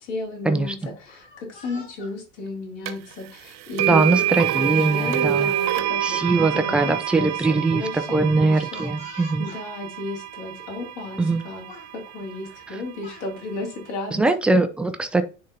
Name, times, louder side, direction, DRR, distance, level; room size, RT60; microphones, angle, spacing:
voice 1, 0.0-4.3 4.5-8.9 9.4-11.7 11.9-14.3, left 2 dB, 50° left, 0 dB, 3.0 m, -34 dB
Speech, 1.0-2.1 3.1-3.3 4.5-4.6 5.0-5.2 6.2-7.0 7.3-7.4 8.7-9.6 10.5-10.6 11.0-11.4 11.7-11.9 12.7-13.3, left 3 dB, 25° left, 3.4 m, -46 dB
sound 1, 2.9-3.0 3.8-11.8, right 12 dB, 40° right, 0.8 m, -27 dB
voice 2, 3.9-5.5 6.0-9.5 11.2-11.4 14.1-15.2, right 3 dB, 5° right, 8 dB, 0.4 m, -21 dB
10.0 x 3.7 x 2.7 m, 0.33 s
figure-of-eight pair, 85°, 41 cm